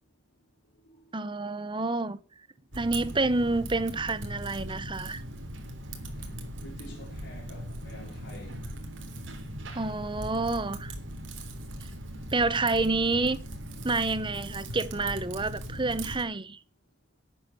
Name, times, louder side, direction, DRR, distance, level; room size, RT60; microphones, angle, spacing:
voice 1, 1.1-2.2 2.8-5.2 9.7-10.9 12.3-13.4 13.8-16.6, right 3 dB, 25° right, 0.9 m, -28 dB
Typing, 2.7-16.2, right 1 dB, 90° right, 3.4 m, -39 dB
voice 2, 6.6-8.6 11.9-12.0, left 1 dB, 65° left, 3.5 m, -48 dB
12.0 x 8.9 x 7.1 m
head